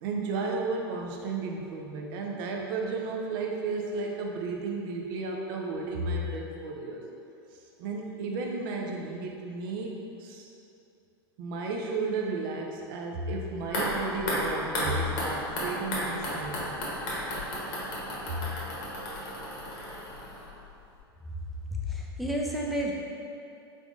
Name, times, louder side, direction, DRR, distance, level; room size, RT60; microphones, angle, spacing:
voice 1, 0.0-7.0 7.5-9.9 10.2-10.5 11.4-16.8 18.3-18.4, right 3 dB, 55° right, 0 dB, 0.6 m, -33 dB
sound 1, 13.6-20.7 21.0-21.1, equal, 65° left, 1.1 m, -33 dB
voice 2, 21.9-22.9, equal, ahead, -3 dB, 0.5 m, -30 dB
3.8 x 3.5 x 2.4 m, 2.6 s
hypercardioid pair, 95°, 13 cm